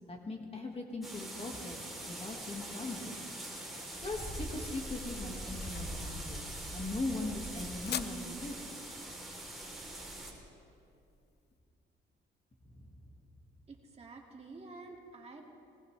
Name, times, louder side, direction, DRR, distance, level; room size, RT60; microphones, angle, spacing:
voice 1, 0.1-1.8 2.1-3.1 4.0-6.5 6.7-8.6 12.7-12.9, left 2 dB, 30° left, 2 dB, 1.9 m, -40 dB
sound 1, 1.0-10.3, right 1 dB, ahead, 3.6 m, -42 dB
sound 2, 2.8-11.4, left 9 dB, 55° left, 0.6 m, -48 dB
voice 2, 13.7-15.4, right 3 dB, 30° right, -1 dB, 2.3 m, -49 dB
20.0 x 19.5 x 3.4 m, 2.6 s
cardioid pair, 90°, 20 cm